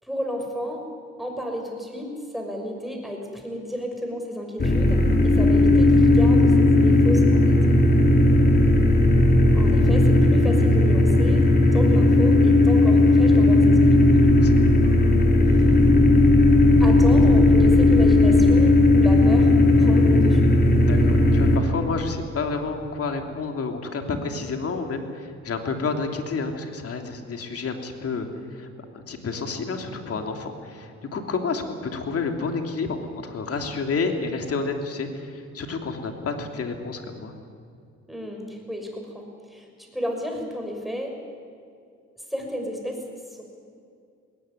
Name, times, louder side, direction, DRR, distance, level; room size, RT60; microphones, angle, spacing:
voice 1, 0.0-0.9 1.2-7.6 9.5-14.0 15.8-15.9 16.8-20.5 38.1-41.2 42.3-43.0, equal, ahead, 2 dB, 6.0 m, -32 dB
sound 1, 4.6-21.6, left 2 dB, 30° left, 3.5 m, -16 dB
voice 2, 14.1-14.7 20.8-28.7 28.9-37.4, left 4 dB, 50° left, 4 dB, 3.1 m, -30 dB
20.5 x 18.5 x 9.9 m, 2.4 s
cardioid pair, 90°, 30 cm